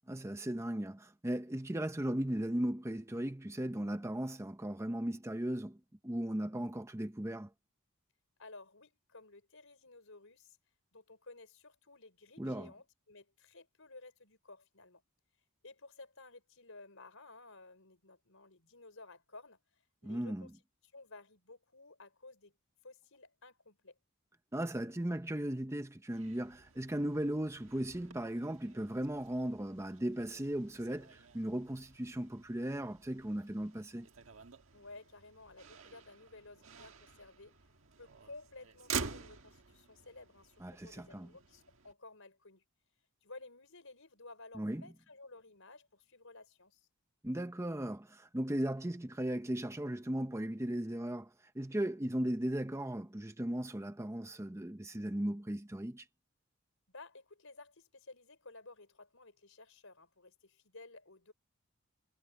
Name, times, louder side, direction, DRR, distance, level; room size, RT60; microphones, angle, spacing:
voice 1, 0.1-5.8 6.0-7.5 12.4-12.7 20.0-20.5 24.5-34.1 40.6-41.3 44.5-44.8 47.2-56.1, right 1 dB, 10° right, 0.7 m, -37 dB
voice 2, 8.4-10.6 10.9-15.0 15.6-19.6 20.0-20.5 20.9-22.5 22.8-24.0 34.7-37.6 38.0-42.6 43.2-46.9 56.9-61.3, left 3 dB, 65° left, 5.7 m, -55 dB
Motor vehicle (road), 26.1-41.9, right 5 dB, 60° right, 1.8 m, -48 dB
head